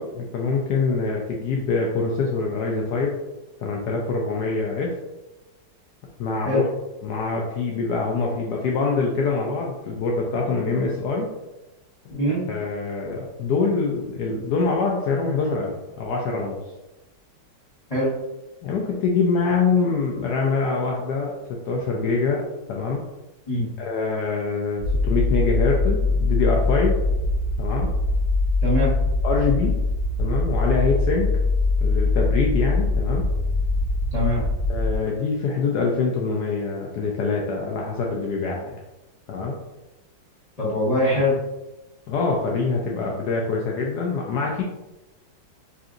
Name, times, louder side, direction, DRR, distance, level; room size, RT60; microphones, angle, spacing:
voice 1, 0.0-3.2 3.6-4.9 6.2-6.6 7.0-11.3 12.1-12.2 12.5-16.6 18.6-22.4 22.7-23.0 23.8-27.0 27.6-27.9 29.2-29.8 30.2-31.3 31.8-33.3 34.7-38.8 39.3-39.5 42.1-44.6, left 4 dB, 70° left, -1 dB, 1.1 m, -24 dB
sound 1, 24.8-35.0, left 3 dB, 90° left, 1.5 m, -22 dB
voice 2, 28.6-28.9 34.1-34.4 40.6-41.4, left 1 dB, 25° left, -11 dB, 1.2 m, -22 dB
5.7 x 2.6 x 2.5 m, 0.98 s
omnidirectional pair, 2.0 m